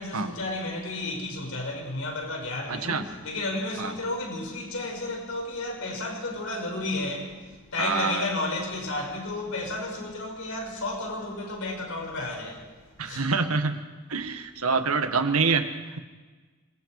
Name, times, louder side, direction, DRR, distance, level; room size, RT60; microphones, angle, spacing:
voice 1, 0.0-12.7 13.0-13.3 14.8-15.1, left 2 dB, 70° left, 6.3 m, -32 dB
voice 2, 2.7-3.1 3.8-3.9 7.8-8.2 13.0-13.8 14.1-15.7, right 4 dB, 85° right, 1.7 m, -26 dB
27.5 x 22.0 x 4.9 m
head